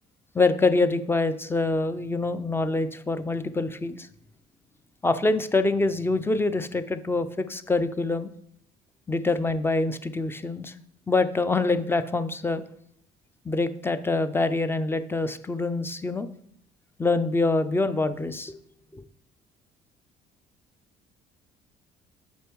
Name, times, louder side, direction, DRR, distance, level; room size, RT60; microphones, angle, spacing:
voice 1, 0.3-4.1 5.0-8.3 9.1-10.7 11.1-12.6 13.5-16.3 17.0-18.6 18.9-19.0, left 3 dB, 15° left, 12 dB, 0.4 m, -25 dB
6.9 x 5.2 x 4.6 m, 0.66 s
cardioid pair, 110°, 17 cm